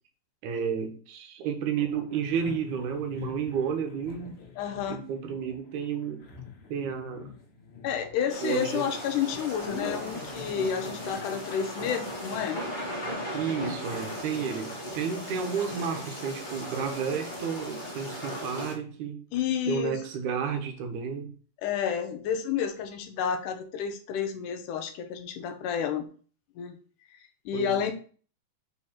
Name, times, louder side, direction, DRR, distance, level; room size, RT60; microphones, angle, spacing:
voice 1, 0.4-4.4 4.9-6.3 6.7-7.3 8.4-8.9 13.3-19.2 19.7-21.3 27.5-27.9, right 7 dB, 75° right, 5 dB, 2.3 m, -31 dB
sound 1, 1.8-14.4, left 5 dB, 55° left, 1.9 m, -46 dB
voice 2, 4.6-5.1 7.8-12.6 19.3-20.0 21.6-26.1 26.6-26.8 27.5-27.9, left 8 dB, 85° left, 7 dB, 2.3 m, -30 dB
sound 2, 8.3-18.7, equal, 30° left, 0.8 m, -37 dB
5.4 x 4.5 x 4.3 m, 0.41 s
omnidirectional pair, 3.7 m